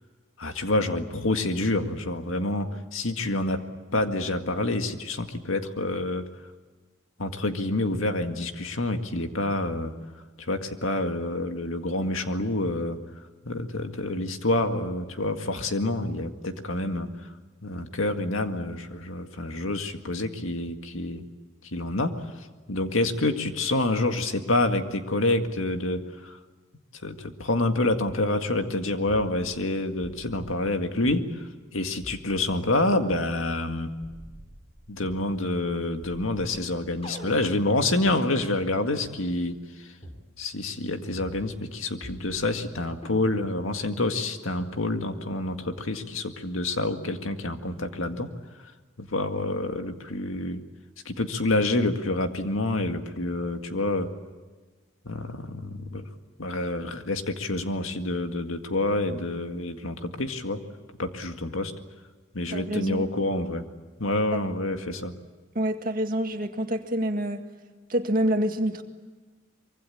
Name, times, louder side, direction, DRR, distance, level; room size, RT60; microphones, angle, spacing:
voice 1, 0.4-3.6 3.9-6.2 7.2-9.9 10.5-13.0 13.4-17.1 17.6-21.3 21.7-22.2 22.7-26.4 27.0-31.3 31.7-33.9 34.9-39.5 40.4-48.3 49.0-50.6 51.1-54.1 55.1-56.0 56.4-60.6 61.0-61.7 62.3-63.6 64.0-65.1, left 2 dB, 90° left, 6 dB, 2.0 m, -27 dB
sound 1, 28.0-28.2 29.0-29.7 30.0-31.2 32.0-33.2 34.0-35.3 36.0-38.2 39.0-39.1 40.0-40.3 41.0-41.7 42.0-42.7 43.0-43.7, equal, 30° left, 4.6 m, -45 dB
voice 2, 62.5-63.0 65.6-67.4 67.9-68.8, right 1 dB, 45° right, 5 dB, 2.0 m, -27 dB
24.5 x 23.5 x 8.6 m, 1.3 s
head